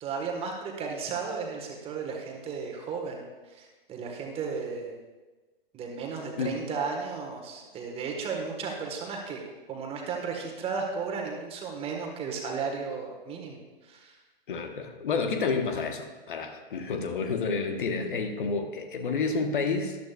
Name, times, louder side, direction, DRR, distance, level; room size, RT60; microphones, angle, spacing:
voice 1, 0.0-4.9 5.7-9.4 9.7-14.2, right 5 dB, 20° right, 1 dB, 1.5 m, -34 dB
voice 2, 14.5-20.0, left 4 dB, 55° left, 6 dB, 1.2 m, -29 dB
13.5 x 11.0 x 2.4 m, 1.2 s
figure-of-eight pair, 120°, 30 cm